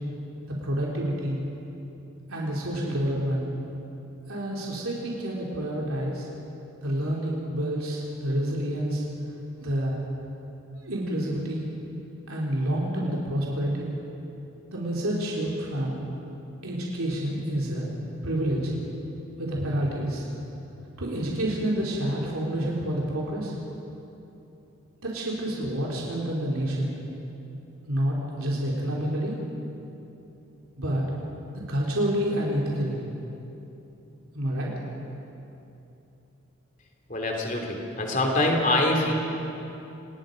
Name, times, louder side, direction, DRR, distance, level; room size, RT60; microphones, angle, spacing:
voice 1, 0.5-1.4 2.3-3.4 4.3-6.3 6.8-9.0 9.6-10.0 10.8-11.7 12.3-13.9 14.7-16.0 16.6-17.9 18.2-18.7 19.4-20.3 21.0-23.5 25.0-26.9 27.8-29.3 30.8-31.1 31.5-33.0 34.3-34.7, right 1 dB, 80° right, -3 dB, 3.3 m, -28 dB
voice 2, 37.1-39.1, left 1 dB, 35° left, 1 dB, 2.9 m, -24 dB
28.0 x 19.5 x 5.2 m, 2.9 s
head